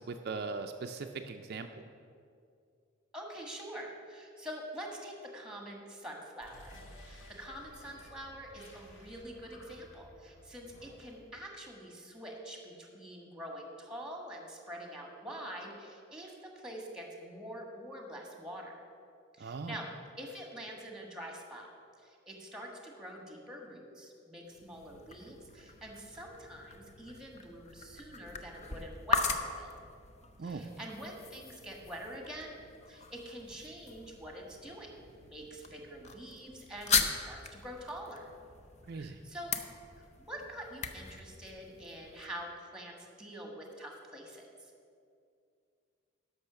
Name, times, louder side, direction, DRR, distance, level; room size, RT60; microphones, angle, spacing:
voice 1, 0.0-1.7 19.4-19.7 30.4-30.7 38.9-39.2, right 4 dB, 55° right, 5 dB, 0.4 m, -39 dB
voice 2, 3.1-18.7 19.3-19.9 20.2-21.7 22.0-29.7 30.4-32.6 32.9-34.9 35.2-38.3 38.9-39.5 40.3-44.7, equal, 5° right, 1 dB, 1.5 m, -45 dB
sound 1, 6.4-11.4, equal, 75° left, 1.8 m, -54 dB
sound 2, 24.5-42.3, left 5 dB, 35° left, 0.6 m, -39 dB
12.0 x 5.5 x 6.7 m, 2.3 s
head